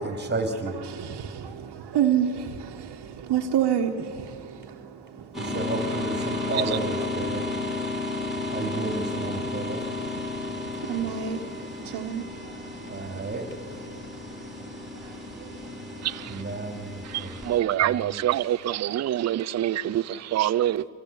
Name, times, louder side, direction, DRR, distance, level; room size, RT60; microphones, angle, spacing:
voice 1, 0.0-1.9 4.5-4.8 5.2-7.6 8.2-9.9 12.8-13.8 16.3-18.2, right 2 dB, 25° right, 2.7 m, -33 dB
voice 2, 0.9-5.5 7.9-8.5 10.3-13.2 13.9-16.1, right 9 dB, 65° right, 1.5 m, -31 dB
sound 1, 5.3-17.6, left 3 dB, ahead, 4.2 m, -33 dB
voice 3, 5.8-6.9 16.0-16.4 17.0-20.9, right 12 dB, 40° right, 0.5 m, -27 dB
24.0 x 16.0 x 8.6 m
cardioid pair, 100°, 42 cm